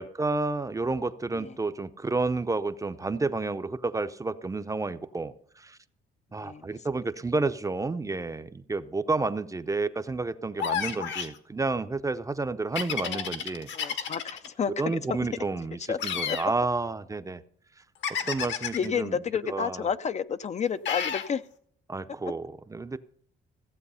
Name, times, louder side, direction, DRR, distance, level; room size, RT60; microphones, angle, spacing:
voice 1, 0.0-5.8 6.3-14.0 14.8-17.4 18.2-19.1 19.5-19.8 21.9-23.0, right 3 dB, 15° right, 12 dB, 0.6 m, -30 dB
voice 2, 6.4-7.0 12.9-13.4 13.7-15.3 15.9-16.0 16.3-16.4 18.1-21.4 22.1-22.3, left 7 dB, 35° left, 13 dB, 0.5 m, -32 dB
sound 1, 10.6-11.4 12.8-14.5 16.0-16.5 18.0-18.9 20.9-21.3, left 8 dB, 70° left, 1.5 m, -31 dB
15.5 x 7.9 x 5.5 m, 0.62 s
cardioid pair, 115°, 20 cm